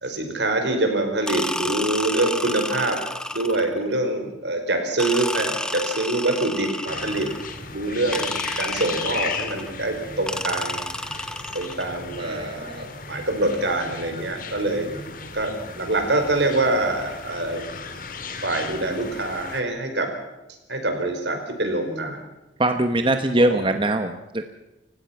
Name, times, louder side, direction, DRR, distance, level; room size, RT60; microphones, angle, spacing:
voice 1, 0.0-3.0 3.3-7.3 7.7-10.8 11.5-14.9 15.3-17.7 18.4-20.1 20.7-22.2 23.4-23.6, right 2 dB, 70° right, 5 dB, 4.9 m, -25 dB
sound 1, 1.3-3.8 5.0-7.6 8.1-9.7 10.3-11.9, left 1 dB, 5° left, 1.0 m, -31 dB
sound 2, 6.9-19.6, left 5 dB, 50° left, 2.3 m, -36 dB
voice 2, 12.2-12.8 22.6-24.5, right 1 dB, 25° right, 7 dB, 1.1 m, -22 dB
29.5 x 16.5 x 5.9 m, 1.0 s
head